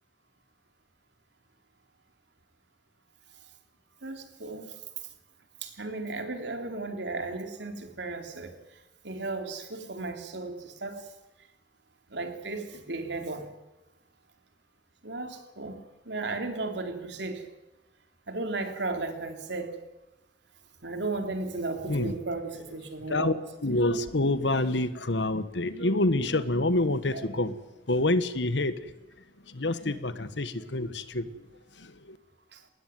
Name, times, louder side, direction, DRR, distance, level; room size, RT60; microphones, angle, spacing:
voice 1, 4.0-4.7 5.6-8.5 9.0-11.1 12.1-13.5 15.0-17.4 18.3-19.8 20.8-23.3 27.1-27.3 32.5-32.6, right 3 dB, 75° right, 5 dB, 3.5 m, -35 dB
voice 2, 23.6-27.6 27.9-28.9 29.5-31.3 31.8-32.2, left 2 dB, 75° left, 13 dB, 1.5 m, -27 dB
20.5 x 19.5 x 9.4 m, 1.0 s
head